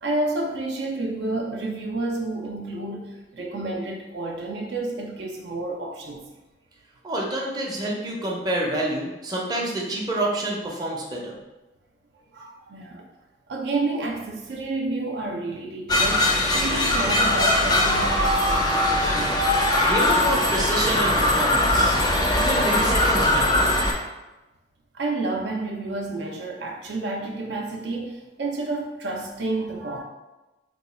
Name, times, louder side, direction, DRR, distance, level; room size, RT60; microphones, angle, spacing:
voice 1, 0.0-6.3 12.3-13.1 13.5-19.4 24.9-30.0, right 2 dB, 70° right, 0 dB, 0.5 m, -30 dB
voice 2, 7.0-11.4 19.8-22.0 22.3-23.7, right 1 dB, 25° right, -3 dB, 0.6 m, -28 dB
sound 1, 15.9-23.9, left 1 dB, 25° left, 0.5 m, -21 dB
3.0 x 2.3 x 4.1 m, 1.1 s
head